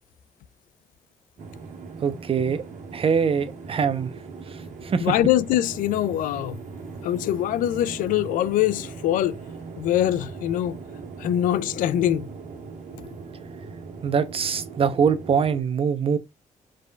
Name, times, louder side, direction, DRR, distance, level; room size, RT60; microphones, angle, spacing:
sound 1, 1.4-15.6, right 4 dB, 70° right, 1.4 m, -39 dB
voice 1, 2.0-2.6 2.9-4.1 4.8-5.1 14.0-16.2, right 6 dB, 45° right, 0.7 m, -23 dB
voice 2, 5.0-6.6 7.0-9.4 9.8-10.8 11.2-12.3, left 12 dB, 85° left, 0.4 m, -23 dB
4.9 x 4.6 x 2.3 m
cardioid pair, 95°, 13 cm